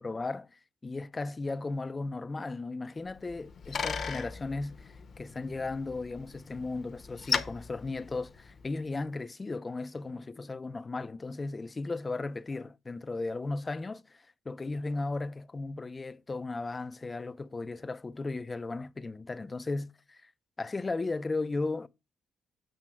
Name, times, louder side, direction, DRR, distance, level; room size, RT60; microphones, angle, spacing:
voice 1, 0.0-20.3 20.6-21.9, left 3 dB, 25° left, 0.5 m, -36 dB
Bicycle, 3.1-8.8, left 6 dB, 50° left, 0.9 m, -38 dB
7.7 x 3.3 x 5.9 m
cardioid pair, 90°, 0 cm